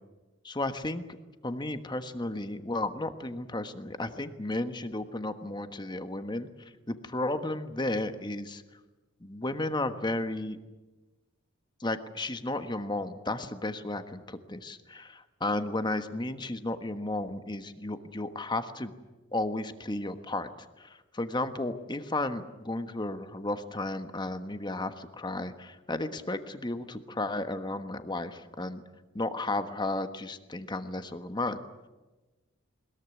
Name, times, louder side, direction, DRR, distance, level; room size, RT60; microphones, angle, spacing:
voice 1, 0.4-1.0 1.4-6.5 6.9-8.6 9.2-10.6 11.8-18.9 19.3-20.5 20.8-28.8 29.1-31.6, left 2 dB, 20° left, 9 dB, 1.3 m, -33 dB
21.5 x 21.0 x 9.7 m, 1.2 s
head